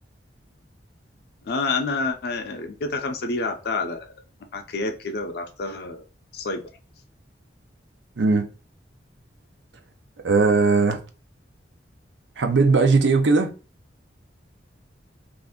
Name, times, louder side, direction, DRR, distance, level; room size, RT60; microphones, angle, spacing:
voice 1, 1.4-4.1 4.5-6.0 6.3-6.6, left 3 dB, 55° left, 0.4 m, -28 dB
voice 2, 8.2-8.5 10.2-11.0 12.4-13.5, right 4 dB, 70° right, 0.6 m, -18 dB
2.5 x 2.4 x 3.5 m
head